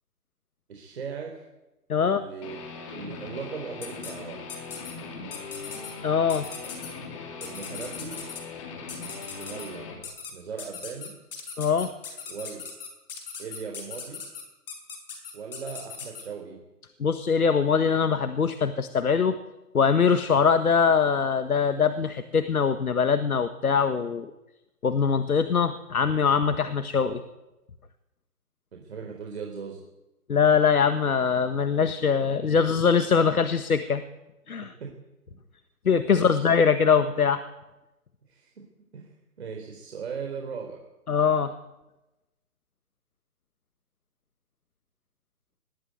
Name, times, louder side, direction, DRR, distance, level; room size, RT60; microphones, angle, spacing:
voice 1, 0.7-1.4 2.0-2.6 2.9-4.4 7.4-8.2 9.3-9.9 10.3-11.1 12.3-12.6 13.4-14.2 15.3-16.6 26.6-26.7 27.1-27.2 28.7-29.8 32.6-32.7 34.8-34.9 36.1-36.5 38.3-38.5 38.9-39.1 39.4-40.8, right 6 dB, 45° right, 1 dB, 4.1 m, -38 dB
voice 2, 1.9-2.2 6.0-6.5 11.6-11.9 17.0-19.4 19.7-24.3 24.8-27.2 30.3-34.0 34.5-34.7 35.8-37.4 41.1-41.5, left 6 dB, 65° left, 10 dB, 1.6 m, -22 dB
Guitar, 2.4-10.0, left 4 dB, 20° left, 2.8 m, -40 dB
sound 1, 3.8-4.1 4.5-4.9 5.3-5.9 6.3-6.9 7.4-8.4 8.9-9.7 10.0-10.3 10.6-16.2, left 6 dB, 35° left, 5.2 m, -39 dB
20.5 x 14.0 x 9.2 m, 1.0 s
hypercardioid pair, 165°, 46 cm